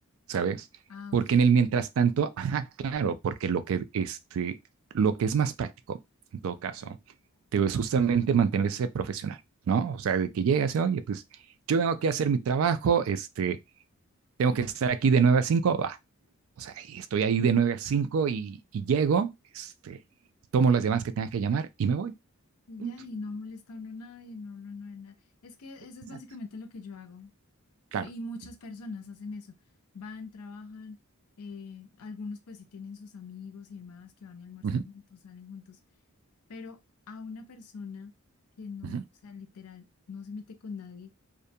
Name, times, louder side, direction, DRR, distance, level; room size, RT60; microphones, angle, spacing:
voice 1, 0.3-0.6 1.1-4.5 4.9-6.0 6.4-7.0 7.5-9.4 9.7-11.2 11.7-13.6 14.4-16.0 16.6-19.3 19.5-20.0 20.5-22.1 22.8-22.9 27.9-28.1 34.6-34.8 38.8-39.0, right 6 dB, 70° right, 0.3 m, -26 dB
voice 2, 0.9-1.4 22.7-25.2 25.4-27.3 28.0-29.6 29.9-31.0 31.4-35.8 36.5-36.8 37.1-38.1 38.6-41.1, left 4 dB, 90° left, 0.5 m, -42 dB
2.4 x 2.1 x 2.6 m
head